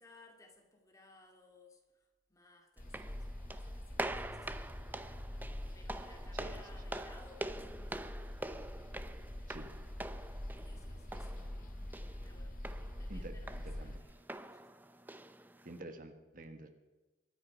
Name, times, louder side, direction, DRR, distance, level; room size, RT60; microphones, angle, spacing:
voice 1, 0.0-5.2 5.7-8.6 10.6-11.8 12.2-14.6, left 3 dB, 20° left, 2.4 m, -62 dB
sound 1, 2.8-14.0, left 1 dB, 45° left, 1.9 m, -45 dB
sound 2, 2.8-15.8, right 1 dB, 10° right, 0.6 m, -46 dB
voice 2, 6.3-7.0 9.5-9.7 13.1-14.0 15.6-16.7, right 2 dB, 50° right, 1.5 m, -49 dB
23.5 x 10.0 x 5.1 m
head